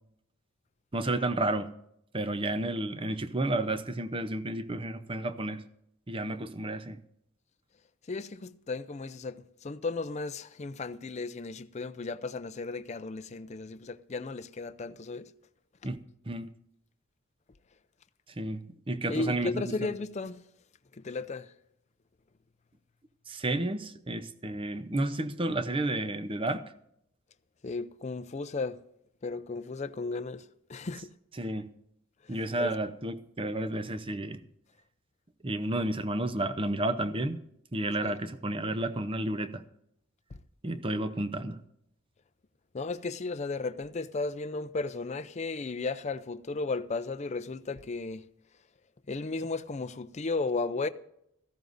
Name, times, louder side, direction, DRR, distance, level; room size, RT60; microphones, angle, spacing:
voice 1, 0.9-1.7 2.1-5.6 6.1-7.0 15.8-16.0 16.3-16.5 18.4-19.9 23.3-26.6 31.3-31.7 32.3-34.4 35.4-37.4 37.7-39.6 40.6-41.6, right 1 dB, 25° right, 0.7 m, -31 dB
voice 2, 8.1-15.2 19.1-20.4 21.0-21.5 27.6-28.8 29.2-30.4 30.7-31.1 32.6-32.7 38.0-38.2 42.7-48.2 49.1-50.9, left 3 dB, 30° left, 0.5 m, -34 dB
17.5 x 14.5 x 2.6 m
head